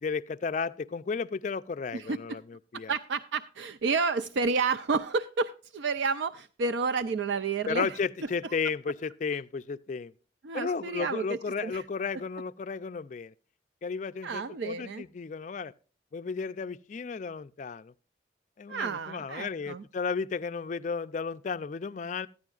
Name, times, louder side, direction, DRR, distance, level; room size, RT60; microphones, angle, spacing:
voice 1, 0.0-2.9 7.7-10.1 10.5-13.3 13.8-15.7 16.1-17.9 18.6-22.3, left 5 dB, 40° left, 0.3 m, -33 dB
voice 2, 1.9-2.4 2.7-8.0 8.4-8.6 10.4-11.8 14.2-15.0 18.7-19.8, right 4 dB, 75° right, 0.4 m, -30 dB
14.0 x 9.8 x 2.3 m
head